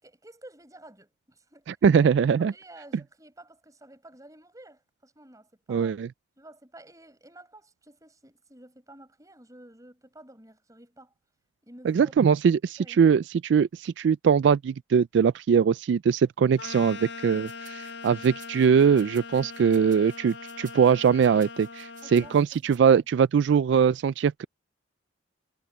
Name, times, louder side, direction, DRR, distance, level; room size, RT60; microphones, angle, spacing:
voice 1, 0.0-1.7 2.0-6.0 6.4-11.1 11.6-12.1 12.8-13.0 22.0-23.1, right 1 dB, 20° right, 7.1 m, -51 dB
voice 2, 1.8-2.5 5.7-6.1 11.9-24.4, right 7 dB, 70° right, 0.3 m, -22 dB
sound 1, 16.6-22.4, left 5 dB, 75° left, 1.2 m, -41 dB
sound 2, 17.4-22.8, right 12 dB, 45° right, 6.2 m, -55 dB
head